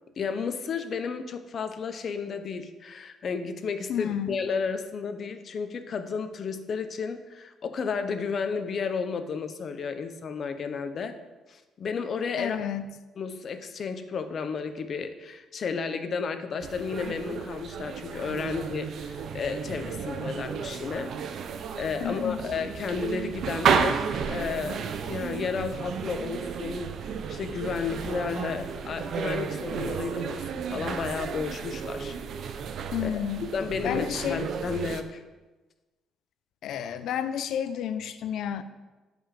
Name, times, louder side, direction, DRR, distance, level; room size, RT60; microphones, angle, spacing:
voice 1, 0.2-11.1 11.5-12.6 13.2-21.2 21.8-26.9 27.3-32.2 33.0-35.2, left 5 dB, 45° left, 9 dB, 1.1 m, -32 dB
voice 2, 3.9-4.4 12.4-12.9 22.0-22.4 32.9-33.4 33.8-34.4 36.6-38.6, left 9 dB, 70° left, 11 dB, 0.8 m, -31 dB
sound 1, 16.6-35.0, right 6 dB, 60° right, 0.8 m, -32 dB
11.0 x 5.5 x 7.6 m, 1.2 s
cardioid pair, 105°, 0 cm